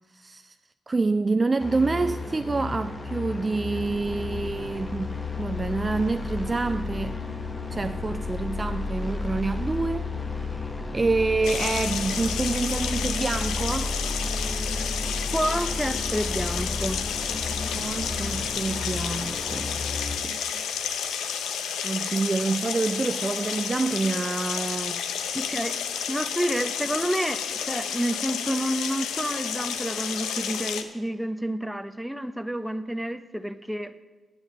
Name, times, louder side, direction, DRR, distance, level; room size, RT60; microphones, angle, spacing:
voice 1, 0.1-0.6 0.9-7.2 7.7-10.1 10.4-10.7 10.9-13.9 17.7-19.7 20.2-20.6 21.8-25.0, right 3 dB, 35° right, 0.3 m, -27 dB
sound 1, 1.6-20.2, left 4 dB, 35° left, 1.2 m, -35 dB
sound 2, 3.8-19.7, left 1 dB, 60° left, 4.1 m, -35 dB
sound 3, 11.4-30.8, left 7 dB, 90° left, 0.6 m, -31 dB
voice 2, 15.3-17.0 25.3-25.8 26.1-33.9, equal, 5° right, 0.7 m, -29 dB
9.1 x 7.0 x 6.7 m
supercardioid pair, 55°, 0 cm